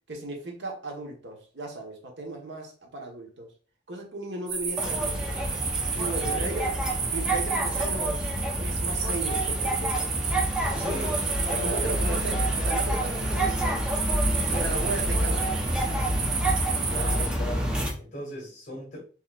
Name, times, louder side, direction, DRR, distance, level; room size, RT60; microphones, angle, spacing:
voice 1, 0.1-3.5 3.9-5.4 5.9-6.8 7.1-8.2 8.6-10.4 11.5-13.9 14.5-16.2, right 2 dB, 85° right, 1.3 m, -36 dB
sound 1, 4.5-17.3, right 5 dB, 50° right, 0.8 m, -32 dB
sound 2, 4.8-17.9, right 1 dB, 5° right, 0.8 m, -28 dB
voice 2, 6.0-6.5 10.6-11.2 11.5-12.0 16.9-19.0, left 1 dB, 40° left, 2.0 m, -37 dB
5.6 x 3.1 x 2.4 m
head